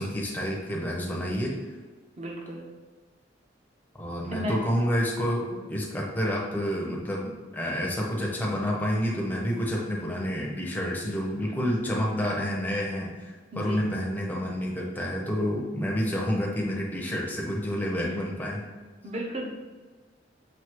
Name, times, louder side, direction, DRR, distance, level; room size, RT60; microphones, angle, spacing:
voice 1, 0.0-1.5 4.0-13.3 13.6-18.7, equal, 10° left, -3 dB, 0.7 m, -29 dB
voice 2, 2.2-2.7 4.3-4.6 5.5-5.7 13.5-13.9 19.0-19.5, equal, 35° right, -1 dB, 0.7 m, -34 dB
5.8 x 2.7 x 3.0 m, 1.4 s
head